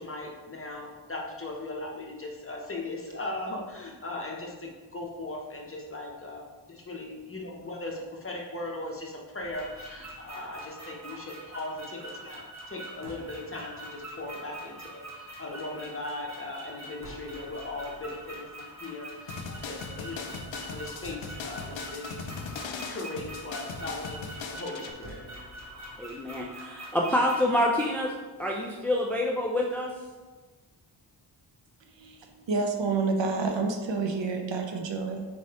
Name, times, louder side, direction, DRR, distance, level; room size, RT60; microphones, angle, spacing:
voice 1, 0.0-20.3 20.6-22.1 22.9-25.2, left 2 dB, 30° left, -1 dB, 0.7 m, -38 dB
sound 1, 9.4-28.0, right 1 dB, 35° right, 0.9 m, -44 dB
sound 2, 19.3-24.9, left 5 dB, 75° left, 0.5 m, -39 dB
voice 2, 26.0-28.1 28.4-29.9, left 1 dB, 5° left, -1 dB, 0.3 m, -27 dB
voice 3, 32.0-35.3, right 4 dB, 65° right, 4 dB, 0.6 m, -29 dB
4.5 x 3.1 x 2.9 m, 1.3 s
wide cardioid pair, 85°, 48 cm